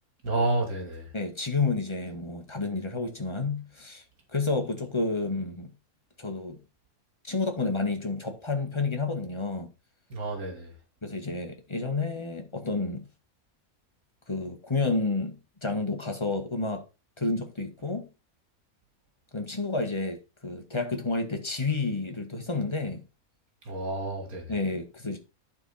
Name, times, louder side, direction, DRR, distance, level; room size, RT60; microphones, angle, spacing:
voice 1, 0.2-1.1 10.1-10.7 23.7-24.5, right 2 dB, 80° right, 2.6 m, -30 dB
voice 2, 1.1-4.0 4.3-5.7 6.2-6.6 7.2-9.7 11.0-13.0 14.3-16.8 17.2-18.1 19.3-23.0 24.5-25.2, left 3 dB, 20° left, 1.5 m, -30 dB
11.5 x 4.4 x 4.2 m
omnidirectional pair, 1.5 m